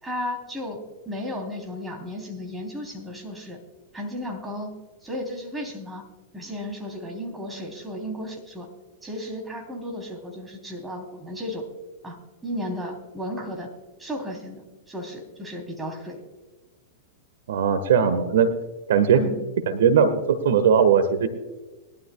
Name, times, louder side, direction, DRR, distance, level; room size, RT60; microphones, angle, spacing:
voice 1, 0.0-3.6 3.9-4.7 5.0-6.0 6.3-8.7 9.0-11.7 12.0-13.7 14.0-16.2 19.1-19.4, equal, 10° right, 2 dB, 3.3 m, -34 dB
voice 2, 17.5-18.5 18.9-19.2 19.7-21.3, right 7 dB, 70° right, 12 dB, 1.4 m, -19 dB
21.5 x 12.5 x 2.3 m, 1.2 s
hypercardioid pair, 110°, 0 cm